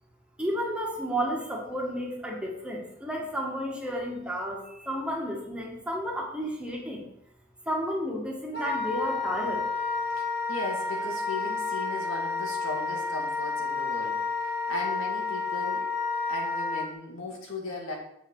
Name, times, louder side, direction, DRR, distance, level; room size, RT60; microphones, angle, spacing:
voice 1, 0.4-7.1 7.6-9.6, equal, 5° right, -2 dB, 1.6 m, -32 dB
Wind instrument woodwind instrument, 8.5-16.9, left 4 dB, 55° left, 1.8 m, -30 dB
voice 2, 10.1-15.9 16.3-17.9, left 2 dB, 80° left, 0 dB, 2.3 m, -37 dB
7.6 x 6.6 x 4.8 m, 0.77 s
head